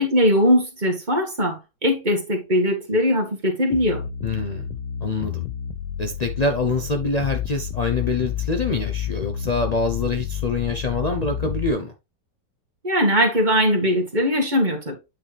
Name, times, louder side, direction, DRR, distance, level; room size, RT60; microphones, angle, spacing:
voice 1, 0.0-4.0 12.8-15.0, equal, 25° right, 1.8 m, -20 dB
sound 1, 3.7-11.7, left 9 dB, 85° left, 1.3 m, -30 dB
voice 2, 4.2-4.7 5.0-5.4 6.0-11.9, left 3 dB, 65° left, 0.4 m, -25 dB
8.8 x 4.3 x 3.4 m
omnidirectional pair, 1.8 m